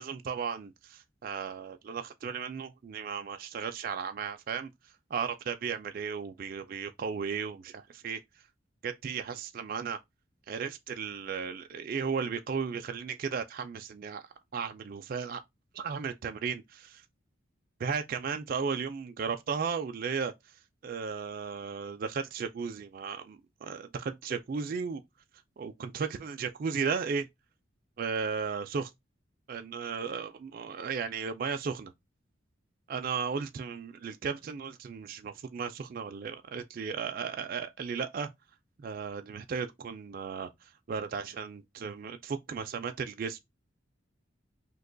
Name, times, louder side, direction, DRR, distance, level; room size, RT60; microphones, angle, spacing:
voice 1, 0.0-4.7 5.1-8.2 8.8-10.0 10.5-14.2 14.5-15.4 15.7-17.0 17.8-20.3 20.8-25.0 25.6-27.3 28.0-28.9 29.5-31.9 32.9-38.3 38.8-43.4, right 6 dB, 45° right, 0.3 m, -35 dB
2.8 x 2.2 x 3.7 m
head